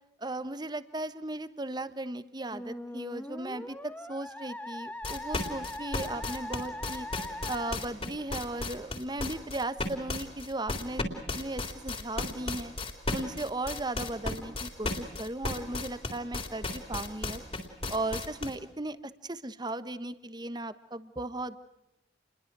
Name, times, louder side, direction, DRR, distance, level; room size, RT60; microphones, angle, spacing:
voice 1, 0.2-12.7 13.1-17.4 17.9-19.0 19.2-21.6, right 2 dB, 25° right, 13 dB, 1.2 m, -36 dB
Musical instrument, 2.5-7.8, left 1 dB, 10° left, 1.7 m, -41 dB
sound 1, 5.0-18.6, left 2 dB, 30° left, 3.7 m, -34 dB
29.5 x 22.0 x 6.2 m, 0.86 s
head